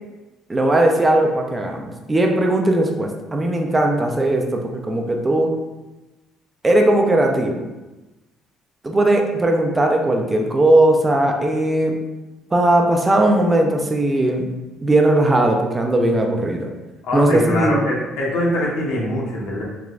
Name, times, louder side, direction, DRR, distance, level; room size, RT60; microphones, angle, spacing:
voice 1, 0.5-5.5 6.6-7.6 8.8-11.9 12.5-14.5 14.8-16.7 17.1-17.8, right 1 dB, 20° right, 2 dB, 0.4 m, -18 dB
voice 2, 17.0-19.6, left 1 dB, 85° left, -4 dB, 1.1 m, -23 dB
3.5 x 3.0 x 2.4 m, 1.1 s
cardioid pair, 110°, 0 cm